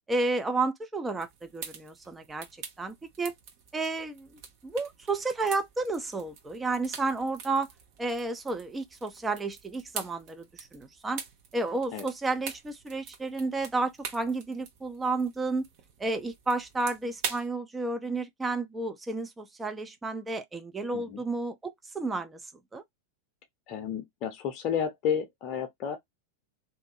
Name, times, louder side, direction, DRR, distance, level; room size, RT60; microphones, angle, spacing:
voice 1, 0.1-2.5 2.8-3.3 3.7-4.3 4.6-7.7 8.0-11.2 11.5-15.6 16.0-22.4 22.7-22.8, right 3 dB, 10° right, 0.5 m, -31 dB
sound 1, 1.2-17.5, right 6 dB, 45° right, 1.0 m, -44 dB
voice 2, 23.7-26.0, left 8 dB, 40° left, 0.7 m, -31 dB
2.6 x 2.6 x 2.4 m
figure-of-eight pair, 90°, 0 cm